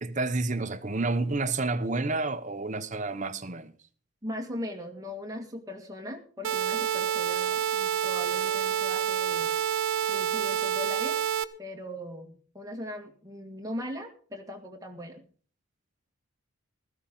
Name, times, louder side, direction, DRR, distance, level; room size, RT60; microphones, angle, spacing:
voice 1, 0.0-3.7, right 3 dB, 35° right, 0.8 m, -29 dB
voice 2, 4.2-9.5 10.1-11.2 11.6-15.2, left 1 dB, 15° right, 1.9 m, -39 dB
sound 1, 6.4-11.4, right 9 dB, 70° right, 0.9 m, -28 dB
16.0 x 14.5 x 3.8 m
head